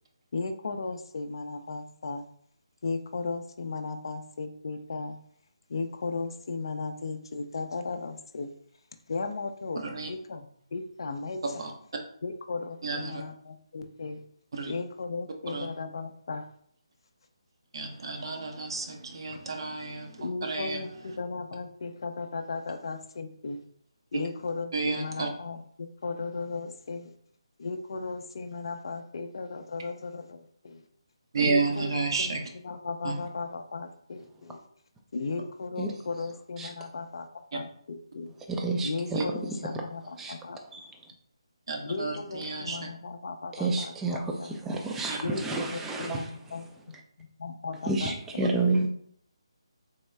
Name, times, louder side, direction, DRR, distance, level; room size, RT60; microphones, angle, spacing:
voice 1, 0.3-2.2 2.8-5.2 5.7-8.5 9.1-9.8 10.1-11.6 12.2-14.2 14.7-16.5 19.3-19.4 20.2-23.6 24.1-27.1 27.6-30.8 31.4-34.6 35.1-38.3 38.8-40.6 41.8-44.6 45.2-45.4 45.7-46.7 47.2-48.4, left 4 dB, 55° left, 7 dB, 0.4 m, -36 dB
voice 2, 9.7-10.1 11.6-11.7 12.8-13.2 14.5-14.7 15.5-15.7 17.7-20.8 24.7-25.3 31.3-32.4 33.0-33.2 39.1-39.2 41.7-42.9 45.1-45.2, right 4 dB, 55° right, 2 dB, 0.8 m, -31 dB
voice 3, 38.5-39.2 39.7-39.8 40.2-40.3 40.7-40.9 43.5-46.3 47.9-48.9, right 3 dB, 10° right, 2 dB, 0.4 m, -29 dB
3.5 x 3.1 x 3.2 m, 0.64 s
figure-of-eight pair, 150°, 3 cm